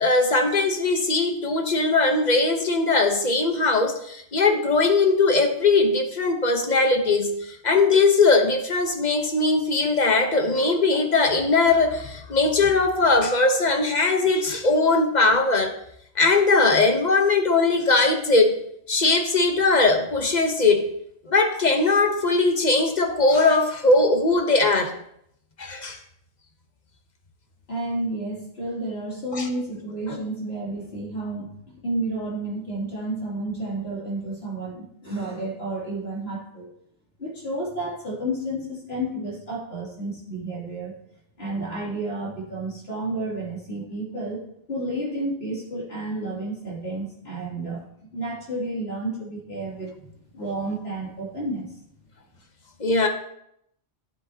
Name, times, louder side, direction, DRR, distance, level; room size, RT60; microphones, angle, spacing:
voice 1, 0.0-7.4 7.6-15.8 16.2-18.6 18.9-20.9 21.3-24.9 25.6-26.0 29.3-29.5 52.8-53.1, left 3 dB, 40° left, 5 dB, 1.0 m, -20 dB
voice 2, 27.7-36.7 37.2-40.9 41.4-44.4 44.7-47.8 48.1-51.7, right 1 dB, 60° left, -4 dB, 3.0 m, -31 dB
12.5 x 7.8 x 2.8 m, 0.72 s
omnidirectional pair, 1.2 m